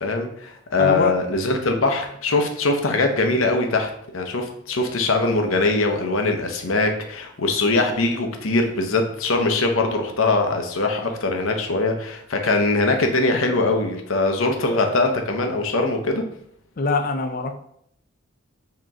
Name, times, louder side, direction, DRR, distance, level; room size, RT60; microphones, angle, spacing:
voice 1, 0.0-16.2, left 2 dB, 80° left, 4 dB, 0.7 m, -22 dB
voice 2, 0.8-1.1 16.8-17.5, left 3 dB, 40° left, 6 dB, 0.4 m, -23 dB
4.9 x 3.0 x 3.6 m, 0.70 s
head